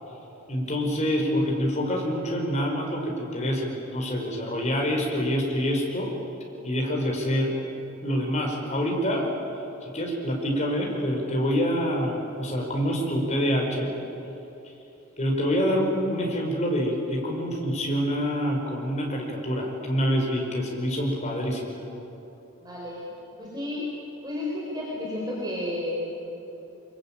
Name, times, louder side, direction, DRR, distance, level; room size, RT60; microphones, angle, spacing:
voice 1, 0.5-6.1 6.6-7.6 8.0-9.3 9.8-13.9 15.2-21.7, equal, 35° left, 0 dB, 5.1 m, -26 dB
voice 2, 22.6-23.1 23.3-23.9 24.2-26.3, left 1 dB, 20° right, -4 dB, 4.5 m, -32 dB
25.5 x 22.5 x 9.0 m, 3.0 s
head